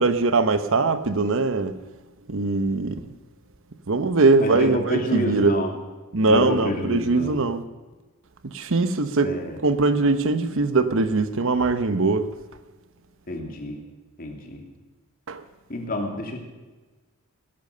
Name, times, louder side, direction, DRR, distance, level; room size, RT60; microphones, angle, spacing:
voice 1, 0.0-1.7 2.3-3.1 3.9-5.5 6.1-7.6 8.5-9.3 9.6-12.3 15.3-15.4, right 3 dB, 65° right, 12 dB, 0.9 m, -21 dB
voice 2, 4.4-5.7 6.2-7.4 9.2-9.6 13.3-13.8 14.2-14.6 15.7-16.4, left 1 dB, 40° left, 2 dB, 2.8 m, -28 dB
18.5 x 11.0 x 6.7 m, 1.2 s
head